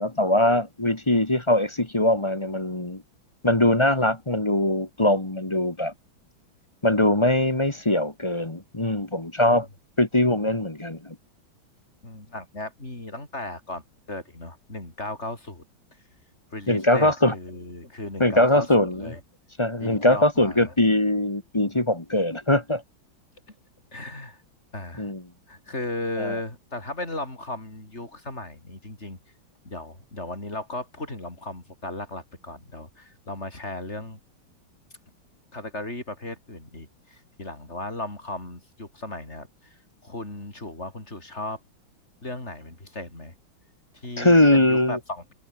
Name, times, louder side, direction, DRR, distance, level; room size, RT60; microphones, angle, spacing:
voice 1, 0.0-3.0 3.4-5.9 6.8-9.7 10.0-11.1 16.7-17.3 18.2-19.1 19.6-22.8 25.0-25.2 26.2-26.4 44.2-45.0, left 1 dB, 15° left, 1.6 m, -21 dB
voice 2, 12.0-13.8 14.1-15.6 16.5-19.2 19.8-20.7 23.9-24.4 24.7-25.1 25.5-29.2 29.6-34.2 35.5-39.8 40.0-41.6 42.2-43.3 43.9-45.3, left 2 dB, 30° left, 5.9 m, -36 dB
omnidirectional pair, 2.2 m